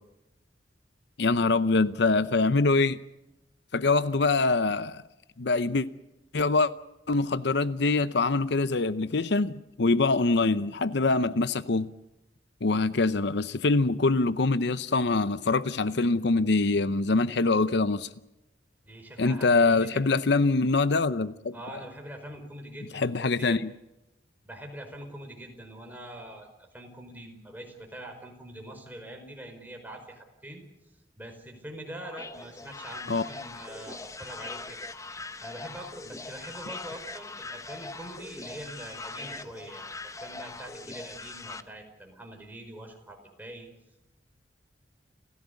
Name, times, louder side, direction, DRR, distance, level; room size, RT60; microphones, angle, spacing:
voice 1, 1.2-3.0 3.7-5.0 5.4-5.9 6.3-6.7 7.1-11.9 12.6-18.1 19.2-21.5 22.9-23.7 33.1-33.3, left 3 dB, 70° left, 0.7 m, -24 dB
voice 2, 18.8-20.3 21.5-23.6 24.4-30.6 31.2-34.8 35.4-43.7, right 1 dB, 10° right, 4.8 m, -44 dB
sound 1, 32.0-41.6, left 3 dB, 20° left, 0.9 m, -41 dB
30.0 x 15.5 x 8.3 m
head